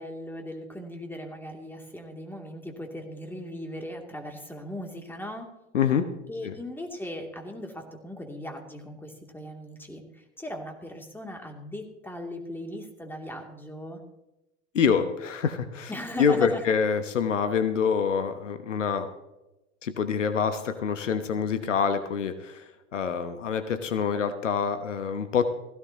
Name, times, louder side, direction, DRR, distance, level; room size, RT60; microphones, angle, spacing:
voice 1, 0.0-5.5 6.3-14.0 15.9-16.6, left 1 dB, 5° left, 3 dB, 2.6 m, -38 dB
voice 2, 5.7-6.1 6.4-6.5 14.7-15.9 16.2-19.1 19.8-22.6 22.9-25.5, left 6 dB, 85° left, 9 dB, 1.1 m, -26 dB
16.0 x 16.0 x 2.9 m, 0.96 s
hypercardioid pair, 85°, 36 cm